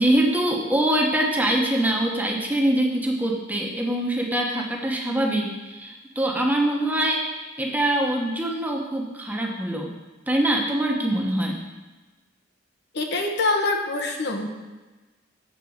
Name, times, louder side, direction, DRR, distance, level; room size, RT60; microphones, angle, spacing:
voice 1, 0.0-9.9 10.3-11.6, right 1 dB, 10° right, 0 dB, 1.0 m, -24 dB
voice 2, 12.9-14.5, left 3 dB, 60° left, 3 dB, 1.0 m, -24 dB
7.8 x 4.5 x 7.1 m, 1.2 s
head